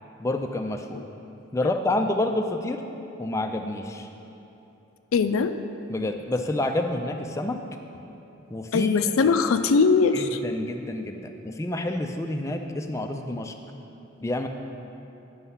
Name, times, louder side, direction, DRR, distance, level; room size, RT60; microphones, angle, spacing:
voice 1, 0.2-1.0 1.5-2.8 3.2-4.1 5.9-7.6 8.5-8.9 9.2-9.3 10.1-13.5 14.2-14.5, left 1 dB, 15° left, 4 dB, 0.3 m, -28 dB
voice 2, 5.1-5.5 8.7-10.4, left 5 dB, 90° left, 9 dB, 0.4 m, -21 dB
9.6 x 5.5 x 5.7 m, 2.9 s
head